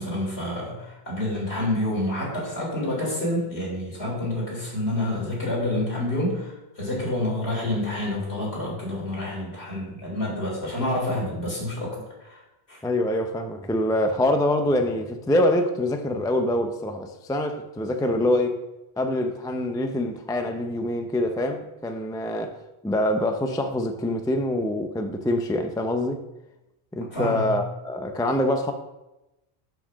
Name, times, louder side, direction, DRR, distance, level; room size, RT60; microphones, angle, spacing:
voice 1, 0.0-12.4 12.7-12.8 27.1-27.5, left 1 dB, 70° left, 3.8 m, -28 dB
voice 2, 12.8-18.6 19.0-22.5 22.8-26.2 26.9-28.7, left 1 dB, 5° left, 0.4 m, -25 dB
6.3 x 6.2 x 6.2 m
omnidirectional pair, 1.1 m